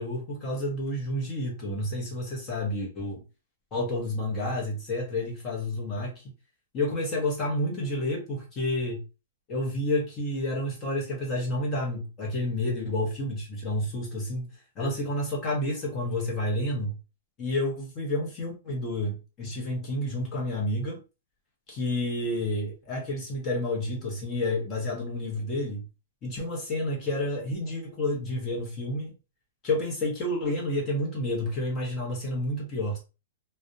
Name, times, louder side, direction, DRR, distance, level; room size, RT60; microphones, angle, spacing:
voice 1, 0.0-3.2 3.7-6.2 6.7-9.0 9.5-14.5 14.8-16.9 17.4-21.0 21.7-25.8 26.2-29.1 29.6-33.0, left 1 dB, 20° left, 0.7 m, -30 dB
2.3 x 2.1 x 2.6 m
hypercardioid pair, 165°, 0 cm